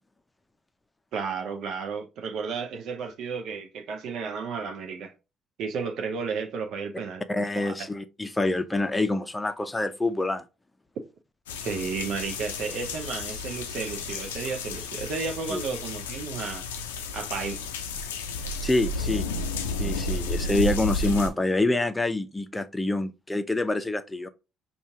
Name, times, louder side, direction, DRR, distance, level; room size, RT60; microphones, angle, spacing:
voice 1, 1.1-5.1 5.6-7.2 7.6-7.7 11.6-16.6 17.1-17.6, right 5 dB, 60° right, 0.6 m, -33 dB
voice 2, 7.3-10.4 15.5-15.6 18.6-19.3 19.8-24.3, left 2 dB, 15° left, 0.6 m, -26 dB
sound 1, 11.5-21.3, left 2 dB, 80° left, 0.4 m, -32 dB
5.1 x 2.4 x 3.5 m
figure-of-eight pair, 50°, 0 cm